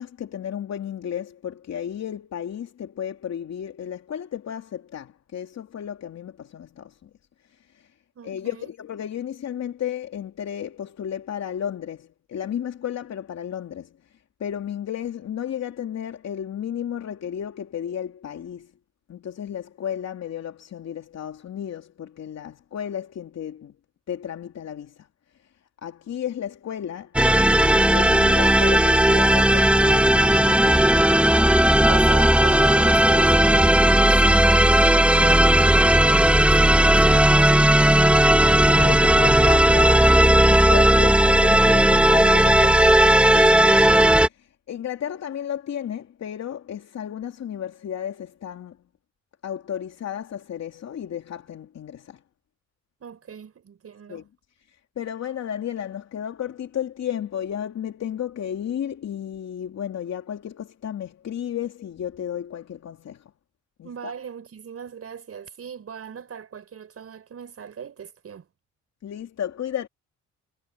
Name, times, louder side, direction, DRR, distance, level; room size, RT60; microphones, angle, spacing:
voice 1, 0.0-7.1 7.4-7.9 8.2-18.7 19.1-23.8 24.1-25.1 25.3-25.5 25.8-31.5 37.8-38.2 38.6-48.8 49.4-52.2 54.1-54.2 54.7-63.3 63.8-64.1 69.0-69.9, left 9 dB, 60° left, 2.9 m, -33 dB
voice 2, 8.1-8.7 31.9-37.4 53.0-54.3 63.8-68.5, right 7 dB, 50° right, 6.3 m, -39 dB
sound 1, 27.2-44.3, right 1 dB, 5° right, 1.4 m, -16 dB
cardioid pair, 90°, 30 cm